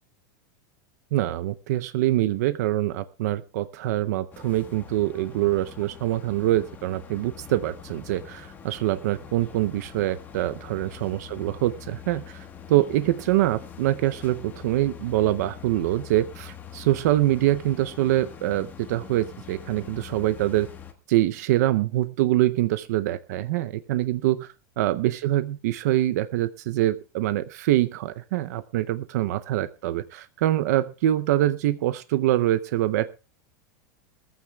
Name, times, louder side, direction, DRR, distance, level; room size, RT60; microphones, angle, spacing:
voice 1, 1.1-20.7 21.1-33.1, right 14 dB, 55° right, 13 dB, 0.6 m, -24 dB
sound 1, 4.3-20.9, left 8 dB, 15° left, 1.4 m, -44 dB
20.5 x 14.5 x 2.3 m, 0.31 s
supercardioid pair, 175°, 10 cm